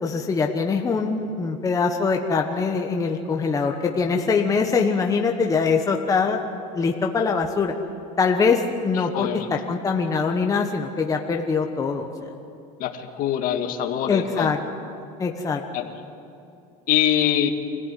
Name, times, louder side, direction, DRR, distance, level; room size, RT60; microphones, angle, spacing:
voice 1, 0.0-7.7 8.2-12.3 14.1-14.6 15.2-15.6, left 5 dB, 20° left, 3 dB, 1.2 m, -23 dB
voice 2, 8.9-9.5 12.8-14.5 15.7-15.9 16.9-17.5, left 11 dB, 55° left, 5 dB, 1.9 m, -24 dB
25.5 x 16.0 x 9.2 m, 2.8 s
supercardioid pair, 130°, 18 cm